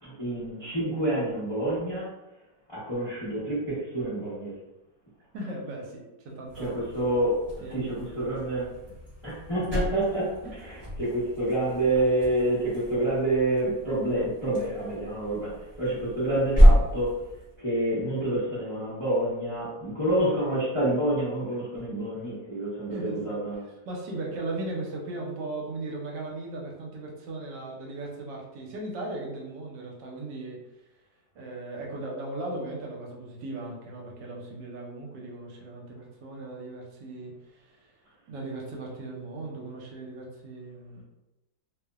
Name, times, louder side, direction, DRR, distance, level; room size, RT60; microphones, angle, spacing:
voice 1, 0.0-2.1 2.7-4.5 6.6-7.4 7.7-8.7 9.2-17.1 17.6-23.6, right 1 dB, 40° left, -11 dB, 0.4 m, -28 dB
voice 2, 5.3-6.9 7.6-8.3 8.8-8.9 22.9-23.4 23.8-30.6 31.3-37.9 38.3-41.0, right 2 dB, 80° right, -1 dB, 1.2 m, -37 dB
sound 1, 6.5-17.6, equal, 10° right, 0.7 m, -27 dB
2.9 x 2.0 x 2.3 m, 0.99 s
omnidirectional pair, 1.9 m